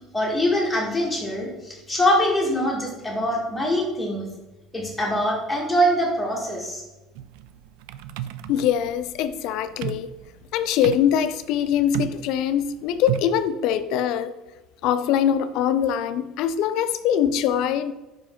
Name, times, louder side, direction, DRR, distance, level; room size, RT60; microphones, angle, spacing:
voice 1, 0.1-4.3 4.7-6.8, equal, 5° left, 1.4 m, -23 dB
sound 1, 7.2-13.5, right 11 dB, 85° right, 0.3 m, -34 dB
voice 2, 8.5-10.1 10.5-14.3 14.8-17.9, left 9 dB, 60° left, 0.4 m, -23 dB
5.2 x 5.0 x 3.6 m
cardioid pair, 170°, 0 cm